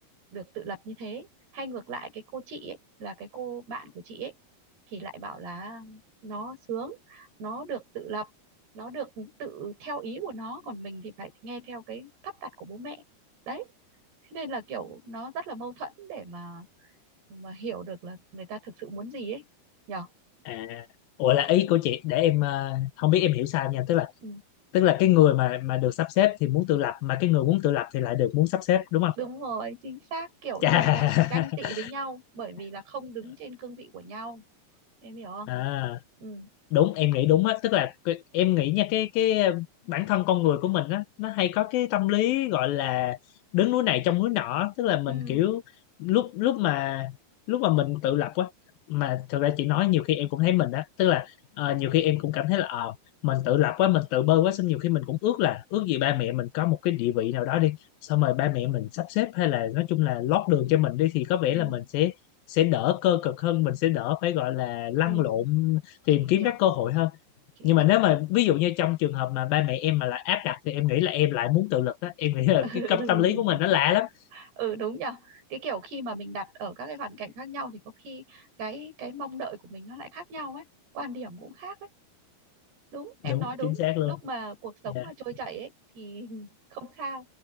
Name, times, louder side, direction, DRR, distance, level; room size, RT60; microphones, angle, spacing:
voice 1, 0.3-1.3 1.5-4.4 4.9-8.3 8.7-13.0 13.5-13.7 14.3-16.7 17.3-19.5 19.9-20.1 24.2-24.4 29.2-34.4 35.0-35.5 36.2-36.5 45.1-45.4 61.6-61.8 65.0-65.4 66.2-66.5 67.6-68.0 72.6-73.8 74.3-80.7 80.9-81.9 82.9-87.3, right 3 dB, 90° right, 9.5 m, -37 dB
voice 2, 20.5-20.9 21.2-24.1 24.7-29.2 30.6-31.9 35.5-36.0 36.7-43.2 43.5-45.6 46.0-47.1 47.5-48.5 48.9-53.0 53.2-57.8 58.0-62.1 62.5-67.1 67.6-74.1 83.2-84.2 84.9-85.1, left 14 dB, 75° left, 2.5 m, -24 dB
omnidirectional pair, 4.5 m